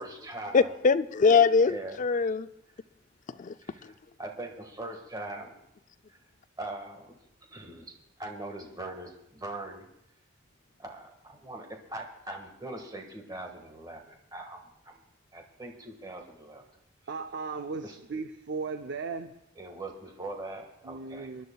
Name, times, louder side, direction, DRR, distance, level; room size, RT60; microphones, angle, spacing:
voice 1, 0.0-0.8 1.6-2.0 3.6-5.5 6.1-6.2 6.6-7.2 7.5-9.9 10.8-15.0 15.3-16.6 17.8-18.0 19.5-21.5, right 2 dB, 20° right, 1.6 m, -41 dB
voice 2, 0.5-2.5 3.4-3.5, left 5 dB, 40° left, 0.4 m, -22 dB
voice 3, 17.1-19.3 20.8-21.5, right 4 dB, 65° right, 0.5 m, -36 dB
27.0 x 11.0 x 2.3 m
head